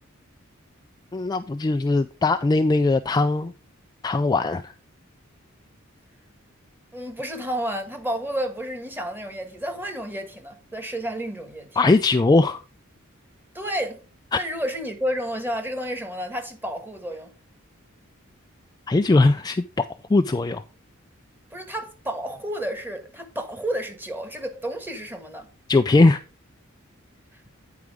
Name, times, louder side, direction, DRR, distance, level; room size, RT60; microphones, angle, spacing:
voice 1, 1.1-3.5 4.0-4.7 11.8-12.6 14.3-14.4 18.9-20.6 25.7-26.2, left 3 dB, 20° left, 0.3 m, -20 dB
voice 2, 6.9-11.8 13.5-14.0 14.3-17.3 21.5-25.5 27.3-27.4, equal, 10° right, 1.4 m, -31 dB
9.5 x 4.8 x 4.8 m
head